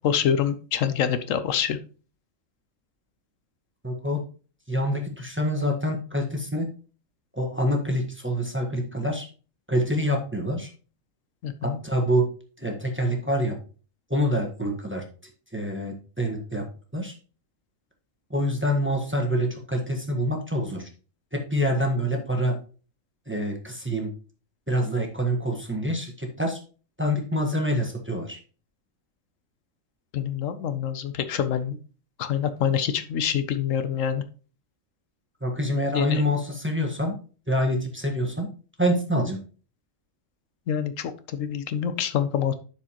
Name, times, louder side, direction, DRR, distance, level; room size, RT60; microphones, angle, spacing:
voice 1, 0.0-1.8 11.4-11.8 30.1-31.8 32.2-34.2 35.9-36.2 40.7-42.5, left 8 dB, 80° left, 11 dB, 1.0 m, -26 dB
voice 2, 3.8-4.2 4.7-6.7 7.3-9.3 9.7-10.7 11.6-12.3 12.6-13.6 14.1-15.0 15.5-16.6 16.9-17.1 18.3-20.9 21.3-22.6 23.3-24.1 24.7-26.6 27.0-28.4 35.4-37.2 37.5-38.5 38.8-39.4, equal, 10° right, 1 dB, 1.2 m, -26 dB
11.0 x 4.7 x 2.9 m, 0.37 s
omnidirectional pair, 1.4 m